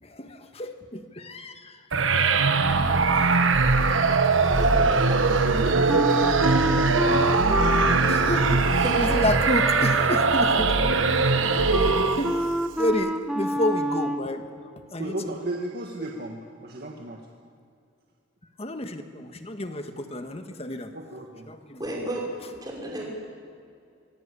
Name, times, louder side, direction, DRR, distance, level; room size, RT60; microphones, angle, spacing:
voice 1, 0.0-1.8 2.5-2.6 3.6-3.8 8.0-11.0 11.9-12.3 12.8-14.4 14.9-15.3 18.6-20.9 21.5-21.8, left 1 dB, 30° left, 7 dB, 1.6 m, -30 dB
sound 1, 1.9-12.5, right 4 dB, 90° right, 1.3 m, -21 dB
voice 2, 4.6-5.8 8.8-9.0 21.8-22.2 22.6-23.1, right 1 dB, 20° right, -2 dB, 5.3 m, -33 dB
Wind instrument woodwind instrument, 5.9-14.3, equal, 5° right, 1.0 m, -29 dB
voice 3, 15.0-17.2 20.9-21.5 21.8-22.1, right 1 dB, 55° right, 0 dB, 1.9 m, -35 dB
24.5 x 19.5 x 8.5 m, 2.4 s
head